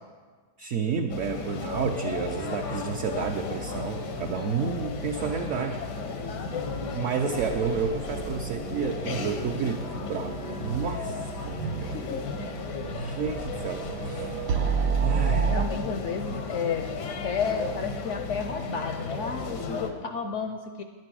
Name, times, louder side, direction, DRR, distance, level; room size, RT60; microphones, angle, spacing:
voice 1, 0.6-5.8 6.9-12.0 12.9-14.4 15.0-15.5, right 6 dB, 65° right, 3 dB, 0.8 m, -31 dB
sound 1, 1.1-19.9, left 4 dB, 90° left, 1.6 m, -34 dB
sound 2, 7.4-15.7, right 6 dB, 80° right, 1.2 m, -31 dB
voice 2, 11.8-12.2 15.2-20.8, left 6 dB, 70° left, 6 dB, 0.7 m, -32 dB
10.0 x 7.5 x 6.2 m, 1.5 s
omnidirectional pair, 1.8 m